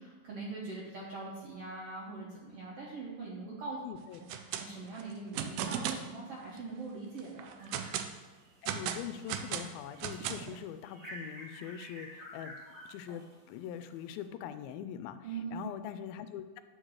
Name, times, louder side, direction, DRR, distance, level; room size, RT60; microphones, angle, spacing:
voice 1, 0.0-3.8 4.6-7.9 15.2-15.6, right 3 dB, 65° right, -5 dB, 1.5 m, -42 dB
voice 2, 3.8-4.2 8.6-12.6 12.9-15.2 15.5-16.6, left 9 dB, 85° left, 10 dB, 2.4 m, -42 dB
sound 1, 4.1-4.7 4.9-6.1 6.6-6.7 7.2-8.1 8.7-10.6, right 9 dB, 80° right, 1.9 m, -36 dB
sound 2, 7.6-8.7 9.1-14.2, equal, 40° right, 1.5 m, -51 dB
9.1 x 3.9 x 6.3 m, 1.3 s
omnidirectional pair, 4.2 m